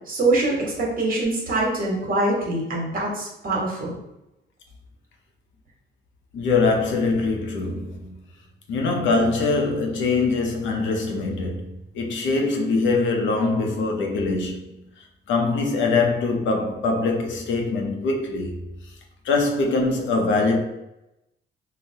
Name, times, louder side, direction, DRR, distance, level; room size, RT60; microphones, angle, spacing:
voice 1, 0.1-3.9, right 2 dB, 45° right, 1.2 m, -24 dB
voice 2, 6.3-8.2 8.7-14.6 15.3-18.6 19.2-20.6, left 3 dB, 75° left, 0.6 m, -23 dB
3.7 x 2.1 x 2.7 m
cardioid pair, 90°, 20 cm